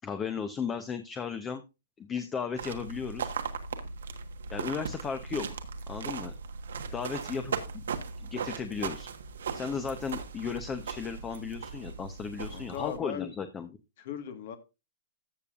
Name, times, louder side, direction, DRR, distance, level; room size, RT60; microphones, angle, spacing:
voice 1, 0.0-1.6 2.0-3.3 4.5-5.5 5.9-6.3 6.9-7.8 8.2-9.1 9.5-13.7, left 6 dB, 15° left, 9 dB, 0.9 m, -35 dB
sound 1, 2.6-13.0, right 6 dB, 85° right, 1.4 m, -38 dB
voice 2, 12.4-13.3 14.0-14.6, left 9 dB, 55° left, 8 dB, 1.6 m, -38 dB
14.0 x 6.8 x 2.5 m, 0.26 s
hypercardioid pair, 145°, 0 cm